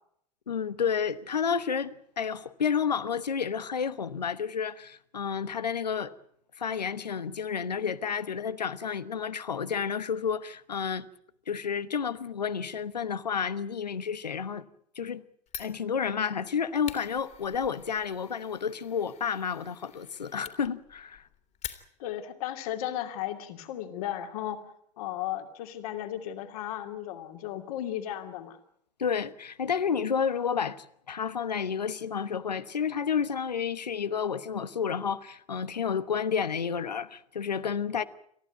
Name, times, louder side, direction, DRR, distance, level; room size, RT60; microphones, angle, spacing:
voice 1, 0.5-6.1 6.6-11.1 11.5-14.6 14.9-15.2 15.6-21.2 29.0-38.0, left 7 dB, 80° left, 1.1 m, -30 dB
Fire, 15.5-22.3, left 9 dB, 35° left, 2.7 m, -47 dB
voice 2, 22.0-24.6 25.0-28.6, left 12 dB, 60° left, 2.8 m, -35 dB
28.5 x 14.5 x 9.2 m
figure-of-eight pair, 75°, 21 cm